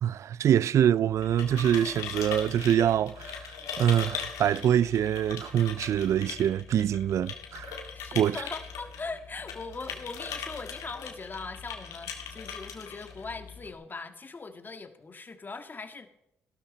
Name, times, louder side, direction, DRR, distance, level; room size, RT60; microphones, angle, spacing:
voice 1, 0.0-7.8 8.2-8.4, right 10 dB, 65° right, 0.3 m, -25 dB
sound 1, 1.1-13.7, left 7 dB, 85° left, 2.0 m, -40 dB
voice 2, 7.9-16.1, left 4 dB, 35° left, 1.7 m, -40 dB
14.5 x 13.0 x 4.1 m
supercardioid pair, 60°, 6 cm